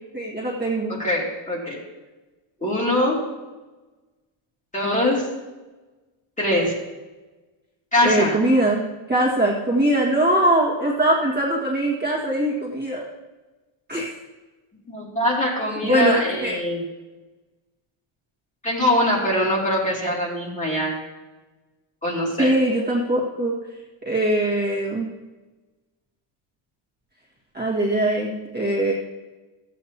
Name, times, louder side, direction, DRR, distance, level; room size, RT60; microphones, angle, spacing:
voice 1, 0.1-0.9 8.0-8.8 9.1-13.0 13.9-14.1 15.8-16.6 22.4-23.5 24.0-25.1 27.5-28.9, right 1 dB, 20° right, -5 dB, 1.7 m, -21 dB
voice 2, 0.9-1.8 2.6-3.3 4.7-5.3 6.4-6.8 7.9-8.4 14.9-16.8 18.6-21.0 22.0-22.6, left 1 dB, 15° left, -4 dB, 2.7 m, -23 dB
15.0 x 8.3 x 2.9 m, 1.2 s
cardioid pair, 140°, 50 cm